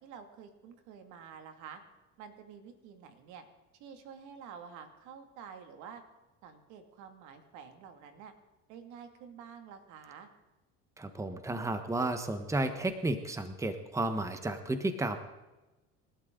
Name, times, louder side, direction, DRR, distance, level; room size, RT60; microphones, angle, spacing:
voice 1, 0.0-1.8 2.2-3.4 3.7-6.0 6.4-8.3 8.7-10.3, right 7 dB, 70° right, 6 dB, 2.5 m, -49 dB
voice 2, 11.0-15.2, right 2 dB, 10° right, 8 dB, 1.2 m, -32 dB
28.0 x 12.5 x 3.9 m, 1.1 s
supercardioid pair, 110°, 30 cm